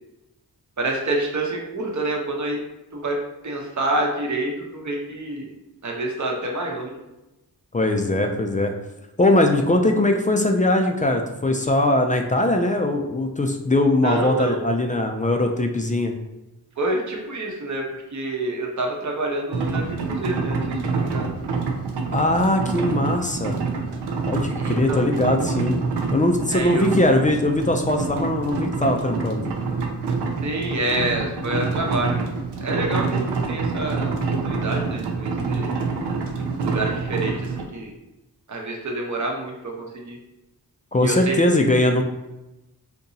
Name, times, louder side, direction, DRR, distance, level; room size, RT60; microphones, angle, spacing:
voice 1, 0.8-2.6 2.9-3.2 3.4-5.5 5.8-6.9 14.0-14.6 16.8-21.3 24.6-25.0 26.5-27.0 30.4-32.3 32.6-35.7 36.6-37.9 38.5-40.2 41.0-41.4, right 2 dB, 45° right, 1 dB, 0.8 m, -27 dB
voice 2, 7.7-8.7 9.2-16.1 22.1-23.6 24.3-25.8 26.1-29.4 40.9-42.0, left 1 dB, 20° left, 4 dB, 0.4 m, -20 dB
sound 1, 19.5-37.7, right 4 dB, 85° right, 0.6 m, -27 dB
3.7 x 2.8 x 2.7 m, 0.98 s
wide cardioid pair, 75°, 40 cm